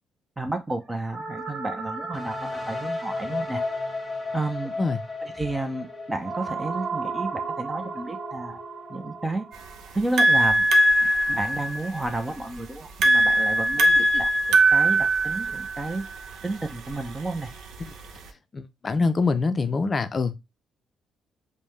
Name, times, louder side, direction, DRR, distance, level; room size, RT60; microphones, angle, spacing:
voice 1, 0.4-3.6 4.3-4.7 5.2-8.6 8.9-9.5 9.9-10.7 11.3-16.1 16.4-17.5, right 2 dB, 20° right, 0.6 m, -31 dB
sound 1, 1.1-11.3, right 5 dB, 45° right, 0.9 m, -36 dB
sound 2, 2.1-9.9, left 3 dB, 20° left, 0.9 m, -35 dB
sound 3, 9.5-18.3, right 1 dB, 75° right, 0.6 m, -22 dB
voice 2, 18.5-20.4, left 4 dB, 35° left, 0.5 m, -24 dB
5.3 x 2.1 x 3.1 m
cardioid pair, 90°, 0 cm